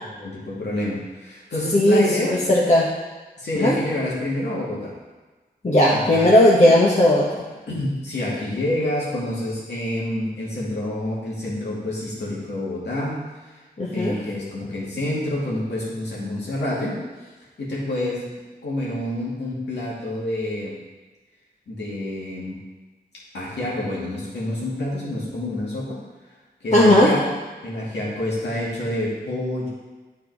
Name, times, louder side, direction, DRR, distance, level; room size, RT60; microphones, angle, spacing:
voice 1, 0.1-2.3 3.4-4.9 5.9-6.3 7.7-13.3 13.9-17.0 17.6-18.3 18.6-20.8 21.7-22.6 23.3-26.0 26.6-27.4 27.6-29.7, left 1 dB, 90° left, -6 dB, 2.5 m, -28 dB
voice 2, 1.7-2.9 3.6-3.8 5.6-7.4 13.8-14.2 26.7-27.1, left 1 dB, 40° left, -5 dB, 1.4 m, -16 dB
9.9 x 4.7 x 4.8 m, 1.3 s
cardioid pair, 45°, 17 cm